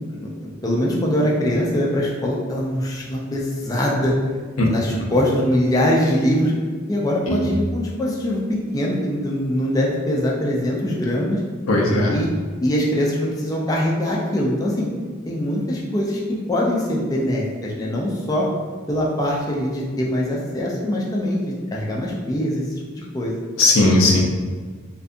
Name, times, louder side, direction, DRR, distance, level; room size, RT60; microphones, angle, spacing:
voice 1, 0.1-4.1 4.7-6.5 6.9-11.4 12.1-12.3 12.6-14.9 15.3-16.2 16.5-18.5 18.9-22.6 22.9-23.4, equal, 20° left, -3 dB, 0.3 m, -22 dB
voice 2, 11.7-12.1 23.6-24.2, left 2 dB, 90° left, -1 dB, 0.5 m, -17 dB
2.6 x 2.3 x 2.5 m, 1.5 s
head